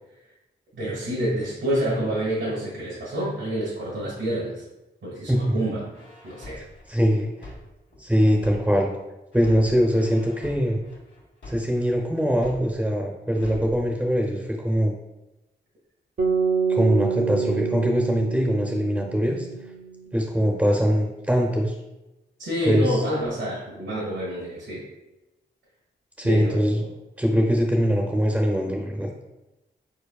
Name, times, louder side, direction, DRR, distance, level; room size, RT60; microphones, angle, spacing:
voice 1, 0.7-4.6 5.0-5.8 6.2-6.6 22.4-24.8 26.2-26.9, equal, 85° right, -8 dB, 1.6 m, -28 dB
voice 2, 5.3-5.6 6.9-7.5 8.0-8.9 9.3-10.8 11.5-14.9 16.7-19.5 20.1-21.7 22.7-23.0 26.2-26.8 27.2-29.1, equal, 5° right, 1 dB, 0.6 m, -22 dB
sound 1, 5.9-8.9 9.3-12.9 13.3-13.9, left 1 dB, 85° left, 1.5 m, -43 dB
sound 2, 16.2-20.4, right 6 dB, 60° right, 0.7 m, -27 dB
4.6 x 4.5 x 2.4 m, 1.0 s
cardioid pair, 55°, 19 cm